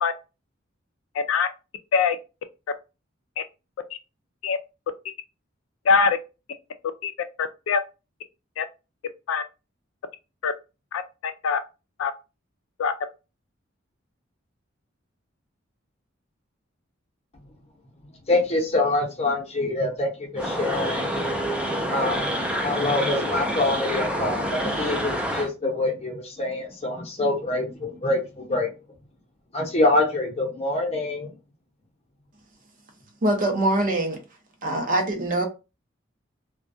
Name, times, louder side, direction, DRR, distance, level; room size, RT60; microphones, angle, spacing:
voice 1, 1.1-1.5 1.9-2.2 4.4-4.6 5.9-6.2 7.0-7.1 7.4-7.8 8.6-8.7 9.3-9.4 10.4-10.5 10.9-11.0 11.4-11.6 12.0-12.1 12.8-12.9, left 5 dB, 80° left, 0.3 m, -22 dB
voice 2, 18.3-21.1 21.8-28.7 29.5-31.3, left 2 dB, 30° left, 0.7 m, -25 dB
sound 1, 20.4-25.5, equal, 5° right, 0.4 m, -27 dB
voice 3, 33.2-34.2 34.6-35.4, right 1 dB, 45° right, 0.6 m, -23 dB
2.2 x 2.2 x 2.6 m
head